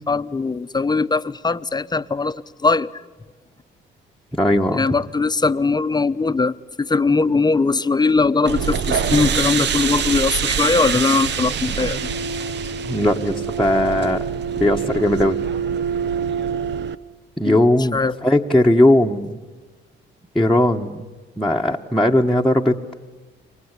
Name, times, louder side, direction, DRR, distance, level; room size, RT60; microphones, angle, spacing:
voice 1, 0.0-3.0 4.7-12.1 17.4-17.6 17.9-18.1, left 4 dB, 20° left, 12 dB, 1.0 m, -20 dB
voice 2, 4.3-5.0 12.9-14.2 14.6-15.4 17.4-19.4 20.3-21.1 21.4-22.9, left 1 dB, ahead, -3 dB, 1.3 m, -18 dB
sound 1, 8.4-16.9, right 7 dB, 60° right, 1.1 m, -24 dB
29.5 x 24.0 x 8.2 m, 1.3 s
cardioid pair, 90°, 20 cm